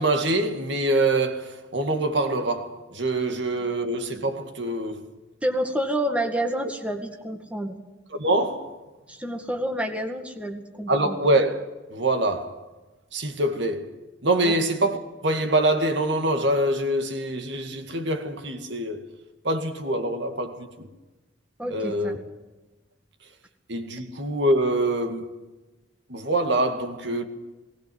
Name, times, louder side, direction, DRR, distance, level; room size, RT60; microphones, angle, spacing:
voice 1, 0.0-5.1 8.2-8.8 10.9-11.6 11.9-12.6 13.1-14.0 14.2-19.1 19.4-20.9 21.7-22.2 23.7-25.3 26.1-27.2, right 1 dB, 60° right, 2.1 m, -25 dB
voice 2, 5.4-7.8 9.1-11.2 14.4-14.5 21.6-22.2, right 1 dB, 5° right, 2.0 m, -29 dB
20.0 x 19.5 x 7.9 m
head